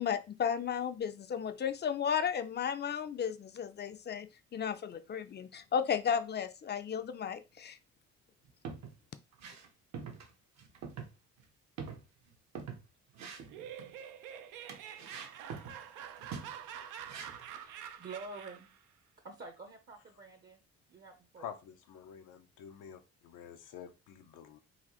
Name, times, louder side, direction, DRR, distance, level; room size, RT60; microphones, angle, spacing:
voice 1, 0.0-7.8, left 7 dB, 35° left, 0.4 m, -34 dB
sound 1, 8.4-9.0 9.3-9.7 9.9-10.3 10.6-11.1 11.4-11.5 11.8-12.8 13.1-13.9 14.7-15.8 16.2-16.6 17.1-17.5, right 5 dB, 65° right, 0.9 m, -45 dB
Laughter, 13.3-18.8, right 9 dB, 85° right, 0.5 m, -47 dB
voice 2, 17.5-18.7 19.2-20.6 20.9-21.5, right 3 dB, 35° right, 0.7 m, -48 dB
voice 3, 21.4-24.6, left 8 dB, 80° left, 0.6 m, -48 dB
4.0 x 2.5 x 2.9 m
cardioid pair, 90°, 30 cm